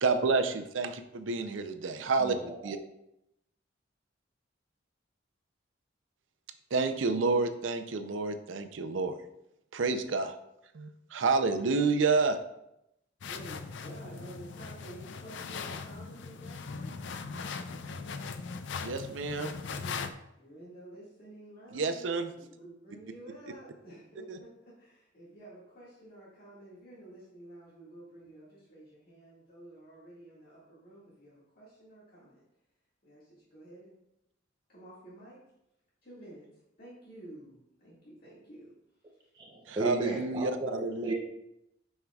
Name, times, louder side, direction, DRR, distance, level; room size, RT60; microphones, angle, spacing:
voice 1, 0.0-2.4 2.6-2.8 6.7-9.2 9.7-10.4 10.7-12.4 18.8-19.5 21.7-22.3 24.3-24.4 39.7-41.1, right 4 dB, 80° right, 8 dB, 0.6 m, -29 dB
voice 2, 2.2-2.7 39.4-41.1, right 2 dB, 25° right, -1 dB, 0.6 m, -34 dB
sound 1, 13.2-20.1, left 5 dB, 65° left, 0.4 m, -39 dB
voice 3, 13.3-17.0 19.2-20.1 20.4-32.4 33.0-34.0 34.7-35.4 36.0-36.5 36.8-38.7 39.1-39.3, right 1 dB, 50° left, -8 dB, 1.9 m, -51 dB
7.7 x 5.5 x 2.3 m, 0.83 s
head